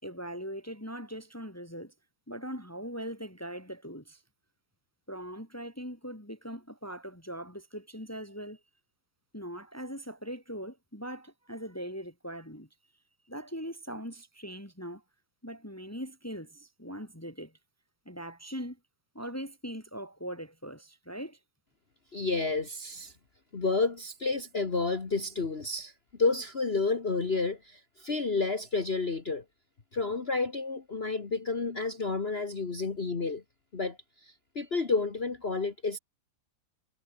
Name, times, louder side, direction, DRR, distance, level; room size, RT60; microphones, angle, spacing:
voice 1, 0.0-1.9 2.3-4.2 5.1-8.6 9.3-12.7 13.3-15.0 15.4-17.5 18.0-18.8 19.1-21.4, equal, 5° left, 3.1 m, -40 dB
voice 2, 22.1-23.1 23.5-25.9 26.2-29.4 29.9-33.4 33.7-36.0, left 3 dB, 35° left, 1.8 m, -30 dB
omnidirectional pair, 2.1 m